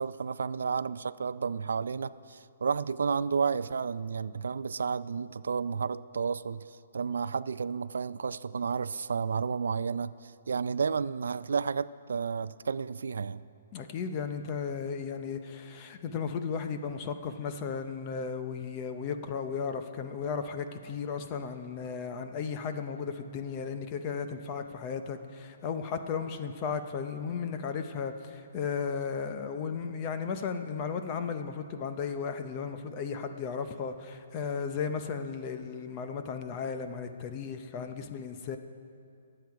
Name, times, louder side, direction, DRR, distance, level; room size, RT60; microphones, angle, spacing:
voice 1, 0.0-6.7 6.9-13.4, right 5 dB, 80° right, 16 dB, 0.3 m, -31 dB
voice 2, 13.7-38.6, left 6 dB, 20° left, 8 dB, 0.6 m, -35 dB
22.5 x 7.8 x 4.7 m, 2.4 s
hypercardioid pair, 175°, 0 cm